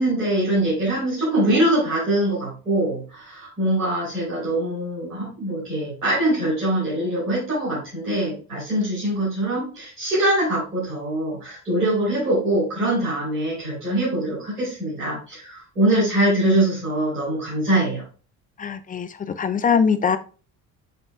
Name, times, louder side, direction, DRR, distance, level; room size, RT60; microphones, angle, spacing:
voice 1, 0.0-18.0, right 1 dB, 85° right, -9 dB, 3.6 m, -23 dB
voice 2, 18.6-19.1 19.4-20.2, left 6 dB, 20° left, 11 dB, 0.4 m, -21 dB
7.9 x 5.3 x 2.3 m, 0.36 s
figure-of-eight pair, 50°, 45 cm